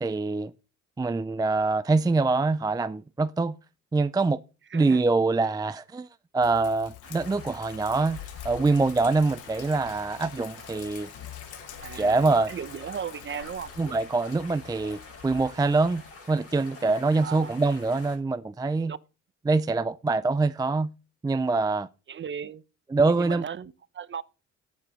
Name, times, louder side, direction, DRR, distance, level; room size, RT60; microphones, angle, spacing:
voice 1, 0.0-0.5 1.0-3.6 3.9-4.4 4.7-6.1 6.3-11.1 11.9-12.5 13.8-18.9 19.5-20.9 21.2-21.9 22.9-23.4, right 3 dB, 15° right, 0.4 m, -24 dB
voice 2, 4.7-5.0 9.6-9.8 11.8-13.7 17.2-17.5 18.9-19.0 22.1-22.6 23.2-24.2, right 7 dB, 40° right, 0.8 m, -37 dB
Sink (filling or washing), 6.4-16.1, left 12 dB, 85° left, 0.9 m, -46 dB
sound 1, 7.0-18.2, left 3 dB, 50° left, 5.3 m, -47 dB
9.5 x 8.5 x 5.1 m
cardioid pair, 90°, 30 cm